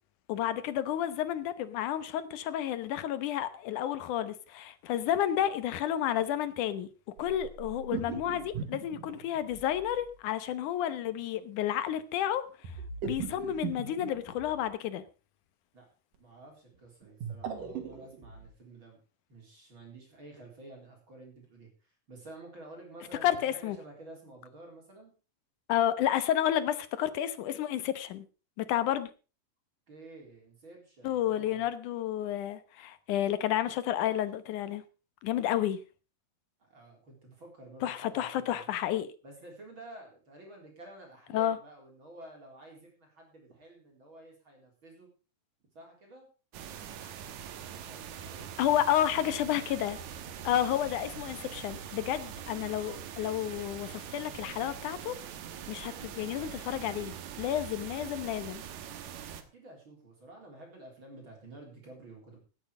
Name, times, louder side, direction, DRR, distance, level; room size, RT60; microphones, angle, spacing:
voice 1, 0.3-6.9 7.2-12.4 13.0-15.0 23.2-23.8 25.7-28.3 28.6-29.1 31.0-34.8 35.2-35.8 37.8-39.1 41.3-41.6 48.6-50.0 50.4-55.2 55.7-58.6, left 11 dB, 75° left, 13 dB, 2.5 m, -31 dB
sound 1, 7.2-10.0 12.6-14.7 17.0-18.5, right 7 dB, 85° right, 3.7 m, -39 dB
voice 2, 16.1-19.0 19.3-25.1 29.9-31.6 36.6-38.7 39.2-45.1 45.7-46.3 47.6-48.5 59.4-62.4, right 2 dB, 35° right, 0 dB, 4.6 m, -51 dB
sound 2, 46.5-59.4, right 8 dB, 65° right, 2.4 m, -43 dB
17.0 x 8.9 x 4.9 m, 0.34 s
omnidirectional pair, 3.7 m